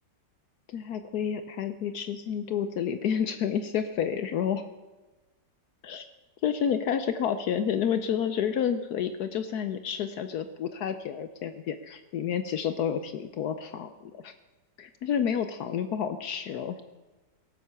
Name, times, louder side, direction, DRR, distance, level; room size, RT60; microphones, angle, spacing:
voice 1, 0.7-4.7 5.8-6.1 6.4-14.3 14.8-16.8, left 8 dB, 70° left, 10 dB, 1.2 m, -30 dB
17.5 x 7.8 x 6.9 m, 1.2 s
omnidirectional pair, 1.8 m